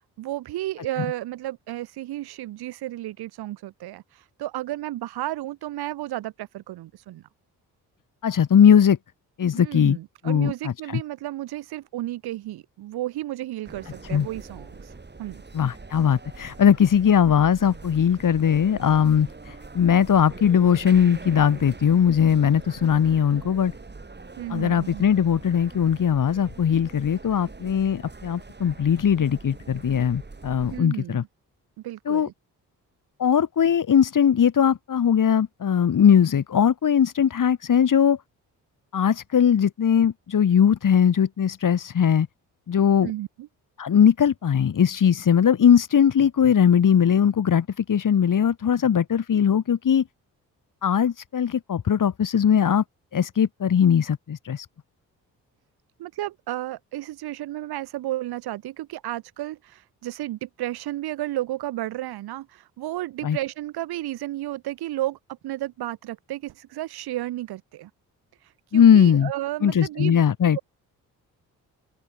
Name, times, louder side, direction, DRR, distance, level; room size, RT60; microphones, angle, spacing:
voice 1, 0.2-7.3 9.5-15.4 24.4-25.1 30.7-31.3 31.8-32.3 43.0-43.5 56.0-67.9 68.4-70.2 70.5-70.6, right 15 dB, 85° right, 2.4 m, -33 dB
voice 2, 8.2-9.0 9.4-10.0 10.2-10.7 14.1-14.3 15.5-23.7 24.5-31.2 32.1-32.3 33.2-38.2 38.9-42.3 42.7-43.1 43.8-50.0 50.8-52.8 53.1-54.7 63.2-63.4 68.7-69.3 69.6-70.6, left 8 dB, 55° left, 2.7 m, -20 dB
sound 1, 13.6-30.8, right 3 dB, 25° right, 5.9 m, -42 dB
open air
supercardioid pair, 60°, 37 cm